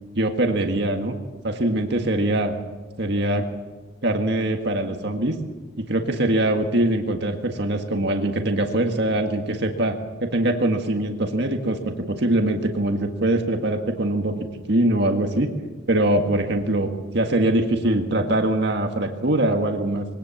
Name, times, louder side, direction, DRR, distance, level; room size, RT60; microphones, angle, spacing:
voice 1, 0.1-1.1 1.4-2.5 3.0-3.4 4.0-5.4 5.8-15.5 15.9-20.1, right 1 dB, 55° right, 4 dB, 1.8 m, -23 dB
23.0 x 18.0 x 7.3 m, 1.2 s
head